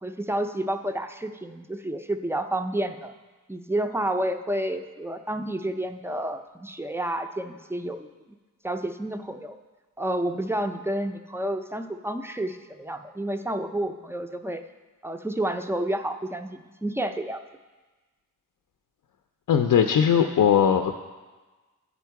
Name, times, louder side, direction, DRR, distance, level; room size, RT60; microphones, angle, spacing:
voice 1, 0.0-3.1 3.5-8.1 8.6-9.6 10.0-14.6 15.0-17.4, right 1 dB, 10° right, 7 dB, 0.3 m, -30 dB
voice 2, 19.5-21.0, left 8 dB, 70° left, 6 dB, 0.5 m, -20 dB
9.9 x 5.2 x 4.6 m, 1.3 s
wide cardioid pair, 110°, 34 cm